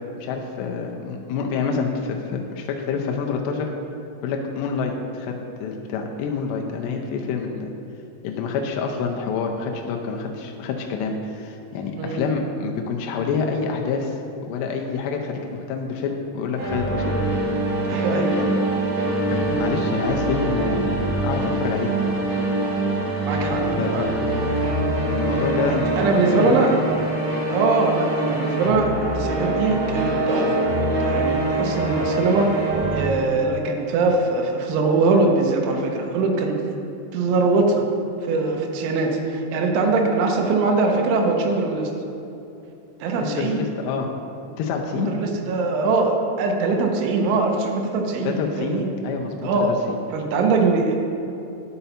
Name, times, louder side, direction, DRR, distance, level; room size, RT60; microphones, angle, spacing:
voice 1, 0.2-3.7 4.2-5.4 5.6-7.7 8.2-17.5 17.9-18.6 19.3-21.9 23.8-24.1 25.1-27.1 43.2-44.1 44.6-45.1 48.2-50.0, left 5 dB, 85° left, 1 dB, 2.5 m, -27 dB
sound 1, 16.6-33.0, right 2 dB, 45° right, 2.8 m, -24 dB
voice 2, 17.9-18.4 23.2-24.1 26.0-26.7 27.5-30.7 31.0-32.5 32.9-36.6 37.1-37.9 38.2-41.9 43.0-43.6 45.0-48.9 49.4-49.7 50.1-50.9, right 3 dB, 80° right, 2 dB, 3.3 m, -22 dB
10.0 x 6.8 x 4.2 m, 2.8 s
omnidirectional pair, 5.4 m